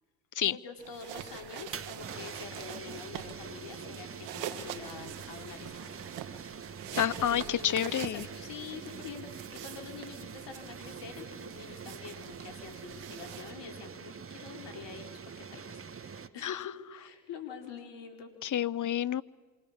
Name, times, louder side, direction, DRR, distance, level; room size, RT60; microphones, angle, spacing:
voice 1, 0.4-6.0 6.9-18.3, left 6 dB, 70° left, 5 dB, 4.3 m, -46 dB
sound 1, 0.8-13.5, right 11 dB, 85° right, 1.8 m, -45 dB
sound 2, 1.4-16.3, right 6 dB, 30° right, 1.6 m, -45 dB
voice 2, 7.0-8.3 16.4-16.6 18.4-19.2, left 10 dB, 45° left, 21 dB, 0.9 m, -29 dB
27.5 x 24.5 x 7.4 m, 1.3 s
supercardioid pair, 65°, 44 cm